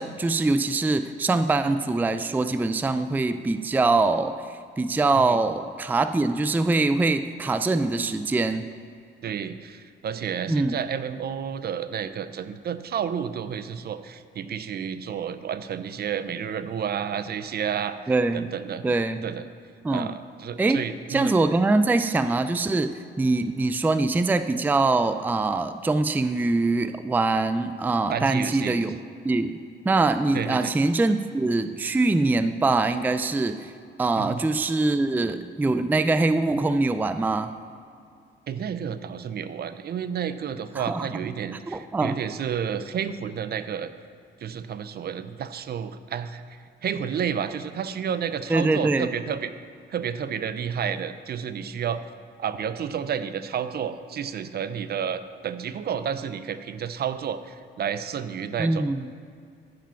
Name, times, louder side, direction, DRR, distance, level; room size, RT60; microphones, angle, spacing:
voice 1, 0.0-4.4 4.8-8.7 10.5-10.8 18.1-18.5 18.8-19.2 19.8-20.2 20.6-20.8 21.1-29.0 29.2-33.7 34.0-37.5 40.8-41.2 41.7-42.2 48.5-49.1 58.6-59.1, right 3 dB, 10° right, 10 dB, 0.4 m, -23 dB
voice 2, 9.2-18.0 18.3-18.8 19.2-19.5 19.9-21.3 28.1-28.8 30.3-30.7 34.1-34.4 38.5-43.9 44.4-49.5 49.9-52.0 52.4-58.9, right 8 dB, 55° right, 12 dB, 0.6 m, -31 dB
14.5 x 5.1 x 5.8 m, 2.3 s
cardioid pair, 90°, 20 cm